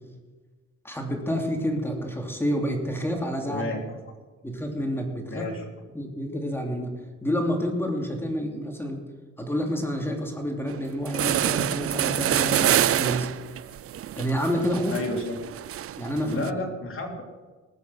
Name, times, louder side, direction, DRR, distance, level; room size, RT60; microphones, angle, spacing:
voice 1, 0.8-3.6 4.4-5.4 5.9-6.9 7.2-9.0 9.4-13.3 14.2-14.9 16.0-16.4, equal, 10° left, 1 dB, 3.0 m, -28 dB
voice 2, 3.5-4.0 5.3-5.6 14.9-15.4 16.3-17.2, left 2 dB, 45° left, 1 dB, 3.3 m, -31 dB
sound 1, 10.7-10.8 11.0-16.5, right 11 dB, 50° right, 0.5 m, -26 dB
20.0 x 7.1 x 6.3 m, 1.3 s
cardioid pair, 90°, 30 cm